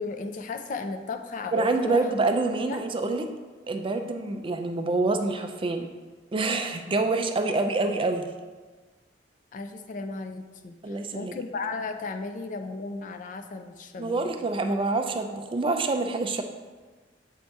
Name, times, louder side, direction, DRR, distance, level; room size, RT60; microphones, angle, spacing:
voice 1, 0.0-2.0 2.7-2.8 7.4-7.5 7.8-8.1 9.5-14.3, left 3 dB, 45° left, 6 dB, 0.4 m, -35 dB
voice 2, 1.5-3.3 3.7-5.9 6.3-8.3 10.8-11.4 14.0-16.4, right 3 dB, 30° right, 6 dB, 0.4 m, -26 dB
7.5 x 2.8 x 4.5 m, 1.3 s
head